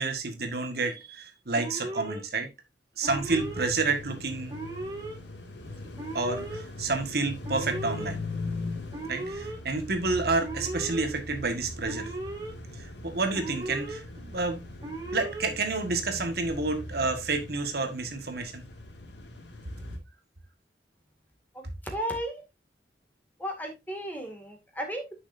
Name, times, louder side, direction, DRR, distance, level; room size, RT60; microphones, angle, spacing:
voice 1, 0.0-2.5 3.0-4.5 6.1-8.2 9.1-12.1 12.8-14.6 15.1-18.6, right 3 dB, 60° right, 1.6 m, -29 dB
Alarm, 1.5-2.2 3.0-3.7 4.5-5.2 6.0-6.6 7.4-8.1 8.9-9.6 10.4-11.0 11.9-12.5 13.3-14.0 14.8-15.5, right 2 dB, 20° right, 2.4 m, -37 dB
sound 1, 3.1-20.0, left 2 dB, 85° left, 2.2 m, -40 dB
voice 2, 21.8-22.4 23.4-25.1, equal, 10° left, 2.2 m, -34 dB
9.9 x 6.5 x 2.7 m
head